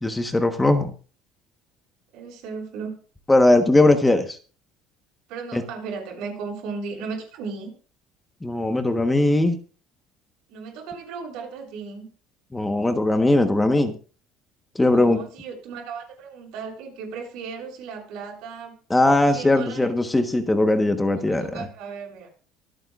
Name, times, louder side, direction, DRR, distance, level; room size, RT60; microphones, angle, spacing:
voice 1, 0.0-0.9 3.3-4.4 5.5-5.6 8.4-9.6 12.5-13.9 14.7-15.2 18.9-21.6, left 2 dB, 10° left, 7 dB, 1.3 m, -19 dB
voice 2, 2.1-2.9 5.3-7.7 10.5-12.1 14.9-18.8 19.3-19.9 21.2-22.3, right 5 dB, 70° right, 1 dB, 7.8 m, -35 dB
25.0 x 8.9 x 2.5 m, 0.37 s
cardioid pair, 145°, 0 cm